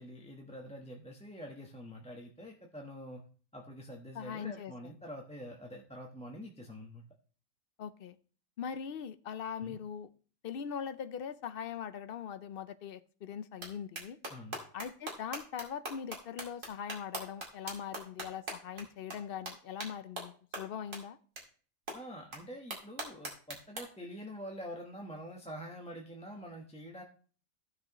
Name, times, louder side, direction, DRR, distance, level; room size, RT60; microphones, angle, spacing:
voice 1, 0.0-3.2 3.5-7.0 9.6-9.8 14.3-14.6 21.9-27.0, equal, 5° left, 1 dB, 0.9 m, -46 dB
voice 2, 4.1-4.9 7.8-8.2 8.6-10.1 10.4-14.2 14.7-21.2, left 8 dB, 55° left, 13 dB, 0.7 m, -41 dB
sound 1, 13.6-13.7 14.0-18.8 19.1-19.2 19.5-19.6 19.8-19.9 20.2-20.3 20.5-20.6 20.9-21.0 21.4-21.5 21.9-22.0 22.3-22.4 22.7-23.8, right 2 dB, 80° right, 2.6 m, -40 dB
14.5 x 6.3 x 3.0 m, 0.40 s
omnidirectional pair, 1.3 m